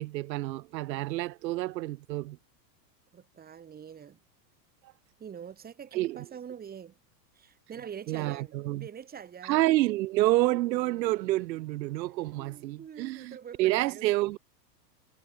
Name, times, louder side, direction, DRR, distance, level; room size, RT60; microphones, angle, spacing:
voice 1, 0.0-2.4 5.9-6.2 8.1-8.9 9.4-14.4, right 17 dB, 90° right, 0.7 m, -28 dB
voice 2, 3.1-4.2 5.2-7.0 7.3-9.6 12.4-14.1, right 8 dB, 20° right, 3.0 m, -45 dB
supercardioid pair, 140°, 50 cm